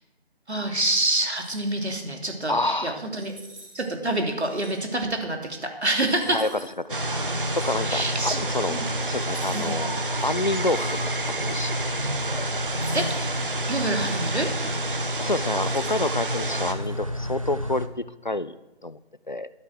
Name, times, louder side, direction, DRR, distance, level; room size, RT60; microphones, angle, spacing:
voice 1, 0.5-3.3 3.7-5.4 5.8-6.4 7.9-8.4 8.7-8.9 9.5-9.8 12.9-13.4 13.7-14.5, right 2 dB, 80° right, 2 dB, 3.2 m, -26 dB
sound 1, 1.2-1.7 3.1-3.9 4.4-4.7 6.1-6.7 7.4-7.8 9.2-9.8 10.2-11.4 12.7-13.2 13.7-14.2 15.2-16.1 16.7-16.9, right 2 dB, 10° right, 2.4 m, -48 dB
voice 2, 2.5-3.0 6.2-7.1 7.5-11.9 12.3-12.5 15.2-17.9 18.2-18.6 18.8-19.0 19.3-19.5, left 2 dB, 45° left, 16 dB, 0.4 m, -28 dB
sound 2, 6.9-17.9, left 1 dB, 30° right, 0.6 m, -31 dB
sound 3, 6.9-16.7, right 3 dB, 50° right, 1.2 m, -31 dB
12.5 x 8.8 x 6.6 m, 0.97 s
figure-of-eight pair, 165°, 33 cm